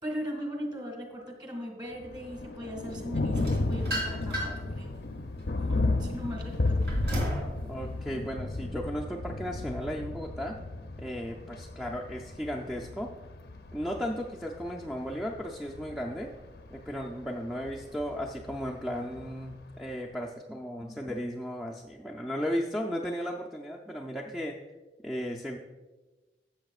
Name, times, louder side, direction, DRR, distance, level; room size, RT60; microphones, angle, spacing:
voice 1, 0.0-5.0 5.6-7.2, equal, 25° right, 2 dB, 1.9 m, -39 dB
Thunder, 1.9-19.9, left 2 dB, 60° left, 0.6 m, -34 dB
sound 1, 3.3-4.7 5.2-7.5, equal, 75° right, 2.9 m, -33 dB
voice 2, 7.6-10.6 11.0-13.1 13.7-16.3 16.7-24.6 25.0-25.6, equal, ahead, 0 dB, 0.5 m, -35 dB
14.0 x 7.6 x 2.4 m, 1.2 s
head